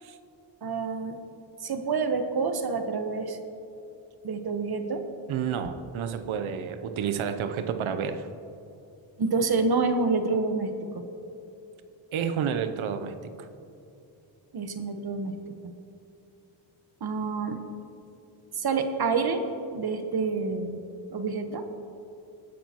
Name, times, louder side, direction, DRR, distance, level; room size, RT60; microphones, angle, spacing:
voice 1, 0.6-1.2 1.6-3.4 4.2-5.0 9.2-10.7 14.5-15.3 17.0-17.6 18.5-19.4 19.7-20.8 21.1-21.6, right 4 dB, 50° right, 7 dB, 1.2 m, -27 dB
voice 2, 5.3-8.3 12.1-13.5, right 7 dB, 85° right, 10 dB, 0.8 m, -30 dB
18.0 x 10.5 x 3.0 m, 2.8 s
cardioid pair, 75°, 47 cm